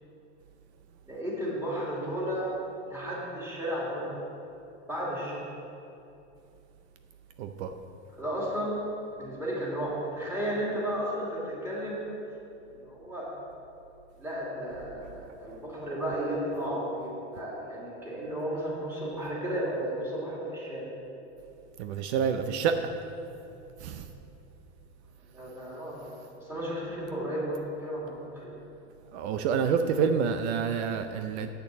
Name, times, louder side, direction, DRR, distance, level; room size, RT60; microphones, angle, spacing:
voice 1, 1.1-2.5 2.9-4.2 4.9-5.4 8.2-8.8 9.2-12.0 12.7-13.3 14.2-20.9 25.3-28.6, equal, 5° right, -7 dB, 2.9 m, -33 dB
voice 2, 7.4-7.7 21.8-22.7 23.8-24.0 29.1-31.5, right 6 dB, 75° right, 8 dB, 0.7 m, -28 dB
8.3 x 6.8 x 7.7 m, 2.7 s
supercardioid pair, 155°, 34 cm